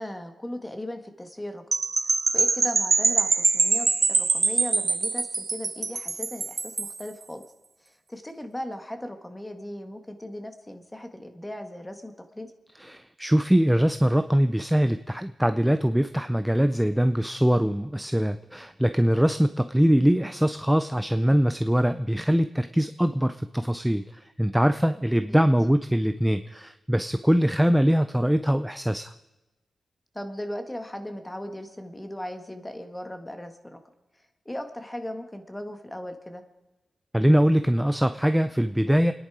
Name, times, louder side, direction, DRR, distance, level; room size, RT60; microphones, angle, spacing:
voice 1, 0.0-1.6 2.3-7.4 7.8-12.5 25.3-25.4 30.1-33.8 34.4-36.4, left 1 dB, 15° left, 7 dB, 1.7 m, -37 dB
sound 1, 1.7-7.0, right 4 dB, 45° right, 0.9 m, -24 dB
voice 2, 12.8-24.0 24.4-29.1 37.1-39.1, equal, 5° right, 10 dB, 0.5 m, -22 dB
28.5 x 10.5 x 4.9 m, 1.1 s
wide cardioid pair, 100°, 0 cm